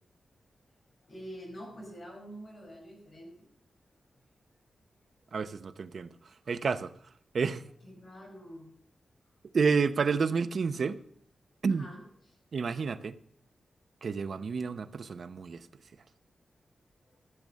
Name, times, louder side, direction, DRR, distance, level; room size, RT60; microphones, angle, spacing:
voice 1, 1.0-3.4 7.8-8.7 11.7-12.4 17.1-17.2, equal, 45° left, 5.4 m, -46 dB
voice 2, 5.3-6.1 6.5-6.9 7.3-7.6 9.5-11.0 11.6-11.9 12.5-13.1 14.0-15.7, right 5 dB, 50° right, 0.7 m, -29 dB
14.0 x 7.0 x 6.3 m
wide cardioid pair, 175°, 0 cm